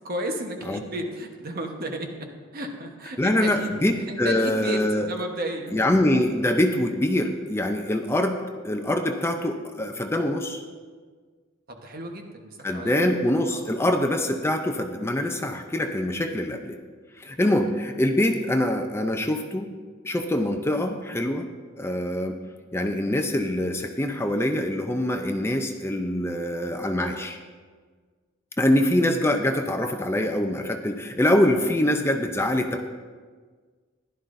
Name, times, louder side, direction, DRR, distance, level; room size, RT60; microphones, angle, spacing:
voice 1, 0.0-3.8 4.1-6.0 11.7-12.9 13.5-13.6 17.4-17.5, right 1 dB, 50° right, 3 dB, 1.2 m, -33 dB
voice 2, 3.2-5.1 5.7-10.6 12.6-16.8 17.2-19.7 20.0-21.5 21.8-22.4 22.7-27.4 28.6-32.9, left 1 dB, 15° left, 5 dB, 0.5 m, -24 dB
15.0 x 11.5 x 2.6 m, 1.5 s
head